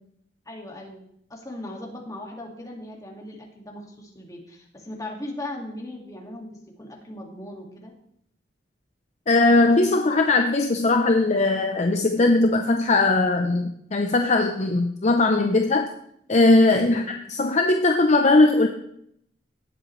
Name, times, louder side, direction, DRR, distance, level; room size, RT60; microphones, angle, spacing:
voice 1, 0.5-1.0 1.3-6.5 6.8-7.9 16.9-17.1, left 1 dB, 20° left, 0 dB, 2.0 m, -38 dB
voice 2, 9.3-15.9 16.3-18.7, left 2 dB, 40° left, 4 dB, 0.7 m, -19 dB
18.0 x 7.6 x 3.2 m, 0.72 s
head